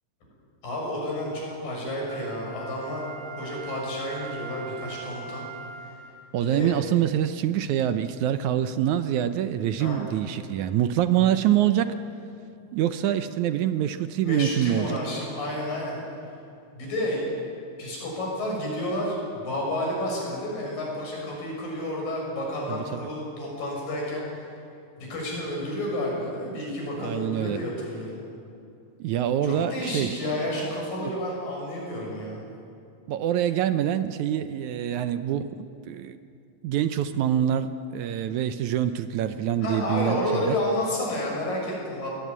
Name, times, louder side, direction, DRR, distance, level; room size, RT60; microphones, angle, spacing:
voice 1, 0.6-3.0 3.4-5.4 6.4-6.7 9.8-10.0 14.2-16.0 16.7-17.3 17.8-24.2 25.0-28.2 29.4-32.5 39.6-42.1, left 1 dB, 90° left, -2 dB, 8.1 m, -30 dB
Wind instrument woodwind instrument, 2.1-6.3 6.8-6.9, right 5 dB, 55° right, 5.2 m, -41 dB
voice 2, 6.3-12.0 12.7-15.0 22.7-23.1 27.0-27.6 29.0-30.2 31.0-31.1 33.1-36.2 36.6-40.6, right 10 dB, 75° right, 11 dB, 1.9 m, -25 dB
21.5 x 18.5 x 9.6 m, 2.6 s
omnidirectional pair, 3.8 m